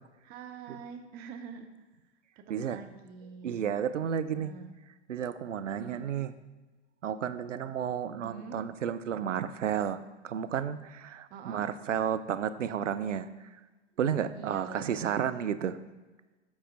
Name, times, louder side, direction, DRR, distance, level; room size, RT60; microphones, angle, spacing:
voice 1, 0.2-1.7 2.4-3.7 4.3-4.7 5.8-6.0 8.2-8.6 11.3-11.7 14.3-15.3, right 6 dB, 25° right, 6 dB, 0.6 m, -45 dB
voice 2, 3.4-4.5 5.1-6.3 7.0-10.0 10.2-13.3 14.0-15.8, right 8 dB, 80° right, 12 dB, 0.5 m, -32 dB
7.5 x 4.9 x 4.5 m, 1.2 s
figure-of-eight pair, 105°, 36 cm